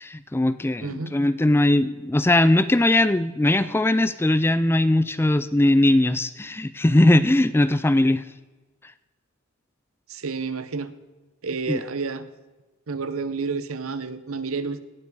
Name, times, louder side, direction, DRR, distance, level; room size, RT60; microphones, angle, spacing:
voice 1, 0.0-8.2 11.7-11.8, left 1 dB, 10° left, 13 dB, 0.3 m, -20 dB
voice 2, 0.8-1.1 10.1-10.9 11.4-12.3 12.9-14.8, right 4 dB, 70° right, 13 dB, 0.8 m, -30 dB
18.0 x 7.2 x 3.9 m, 1.2 s
head